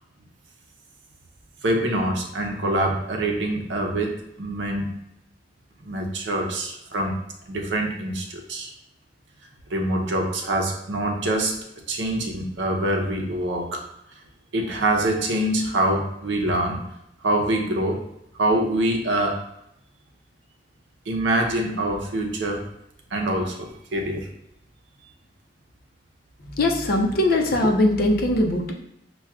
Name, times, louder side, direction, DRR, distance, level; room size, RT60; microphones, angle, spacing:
voice 1, 1.6-5.0 5.8-7.2 7.5-8.7 9.7-11.6 11.9-13.8 14.5-16.9 17.2-18.0 18.4-19.4 21.1-22.6 23.1-24.3, right 1 dB, 80° right, 1 dB, 0.6 m, -25 dB
voice 2, 26.6-28.7, left 1 dB, 55° left, 1 dB, 0.6 m, -20 dB
5.7 x 2.2 x 2.3 m, 0.80 s
head